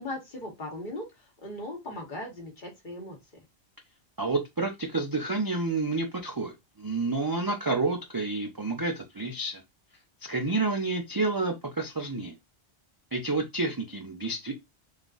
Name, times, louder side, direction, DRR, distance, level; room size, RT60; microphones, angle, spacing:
voice 1, 0.0-3.2, left 1 dB, 50° left, 1.2 m, -38 dB
voice 2, 4.2-9.6 10.3-12.3 13.1-14.5, right 3 dB, 35° right, 0.3 m, -29 dB
3.7 x 2.5 x 2.4 m
omnidirectional pair, 1.1 m